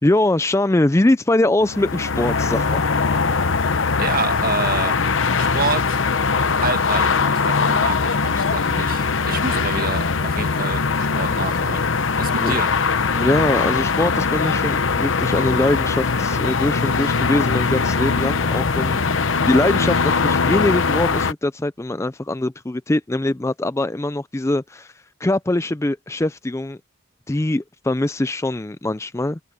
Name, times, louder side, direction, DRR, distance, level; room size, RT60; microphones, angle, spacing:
voice 1, 0.0-2.9 12.4-12.5 13.1-19.0 19.5-24.9 25.2-26.8 27.3-29.4, left 1 dB, 15° left, 0.4 m, -22 dB
sound 1, 1.6-21.3, left 4 dB, 65° left, 0.9 m, -21 dB
voice 2, 4.0-5.0 5.4-6.0 6.6-11.9 12.2-12.7, right 4 dB, 45° right, 1.6 m, -28 dB
head